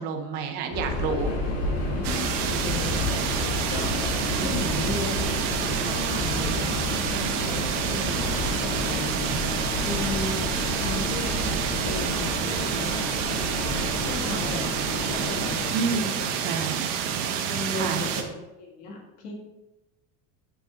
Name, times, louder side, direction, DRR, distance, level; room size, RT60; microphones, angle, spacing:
voice 1, 0.0-1.3 4.4-4.8 9.2-9.4 15.7-16.1 16.4-16.9 17.8-18.0, right 5 dB, 25° right, 5 dB, 0.4 m, -30 dB
Subway metro underground, 0.7-16.0, left 1 dB, 40° left, 1.6 m, -31 dB
voice 2, 1.9-9.1 9.8-13.1 14.1-17.0 17.3-19.3, left 2 dB, 60° left, -1 dB, 1.9 m, -36 dB
sound 1, 2.0-18.2, right 8 dB, 65° right, 0.9 m, -29 dB
sound 2, 3.1-15.8, left 3 dB, 20° left, 1.1 m, -38 dB
6.7 x 5.0 x 3.5 m, 0.99 s
cardioid pair, 170°, 39 cm